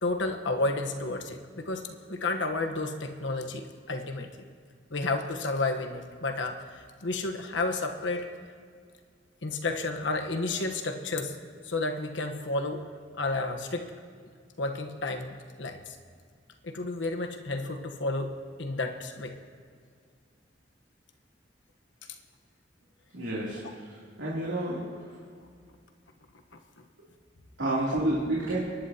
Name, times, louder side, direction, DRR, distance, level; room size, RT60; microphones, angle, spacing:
voice 1, 0.0-4.4 4.9-8.3 9.4-11.4 11.6-12.9 13.2-13.9 14.6-16.0 16.6-19.3, left 2 dB, 80° left, 4 dB, 1.1 m, -31 dB
voice 2, 23.1-24.8 27.6-28.6, right 1 dB, 90° right, -7 dB, 2.9 m, -30 dB
29.5 x 11.5 x 2.9 m, 2.1 s
head